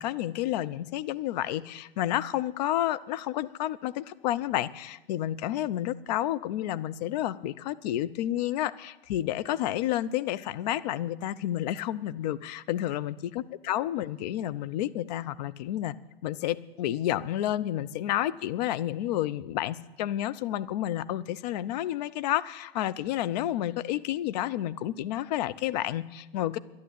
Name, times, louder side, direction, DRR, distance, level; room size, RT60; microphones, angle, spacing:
voice 1, 0.0-15.9 16.2-26.6, left 13 dB, 45° left, 16 dB, 0.6 m, -30 dB
11.5 x 11.0 x 8.2 m, 1.0 s
hypercardioid pair, 130°, 30 cm